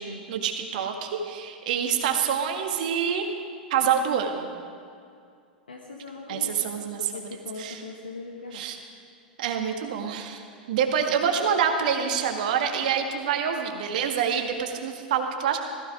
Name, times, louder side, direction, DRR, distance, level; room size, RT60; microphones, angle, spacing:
voice 1, 0.3-3.3 3.7-4.5 6.3-7.0 7.6-7.8 8.5-8.8 9.4-10.4 10.7-15.6, right 7 dB, 60° right, 4 dB, 1.9 m, -26 dB
voice 2, 5.7-8.6, left 3 dB, 80° left, 2 dB, 1.5 m, -40 dB
17.5 x 15.0 x 5.0 m, 2.3 s
figure-of-eight pair, 95°, 5 cm